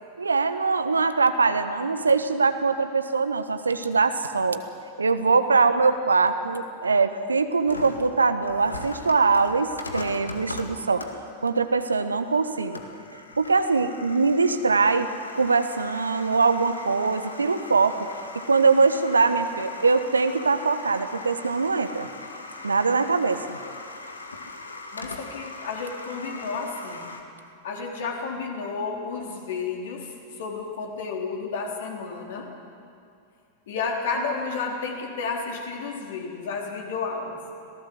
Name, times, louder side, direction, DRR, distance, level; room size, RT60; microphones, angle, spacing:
voice 1, 0.2-4.6 5.0-11.0 11.4-12.8 13.4-15.1 15.3-18.0 18.5-22.1 22.6-23.6, right 4 dB, 75° right, 10 dB, 1.3 m, -22 dB
sound 1, 7.7-27.2, left 2 dB, 80° left, 2.0 m, -40 dB
voice 2, 24.9-27.1 27.6-30.1 30.4-32.5 33.7-37.4, left 4 dB, 60° left, 0 dB, 4.2 m, -31 dB
26.5 x 18.0 x 7.9 m, 2.4 s
figure-of-eight pair, 90°, 0 cm